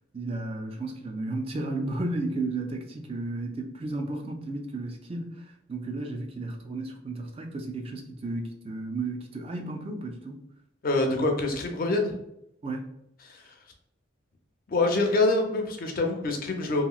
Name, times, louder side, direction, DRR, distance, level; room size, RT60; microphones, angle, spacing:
voice 1, 0.1-5.4 5.7-10.4 12.6-12.9, right 2 dB, 30° right, 3 dB, 0.3 m, -33 dB
voice 2, 10.8-12.1 13.2-13.5 14.7-16.8, left 2 dB, 45° left, 3 dB, 0.4 m, -25 dB
2.8 x 2.8 x 2.3 m, 0.79 s
head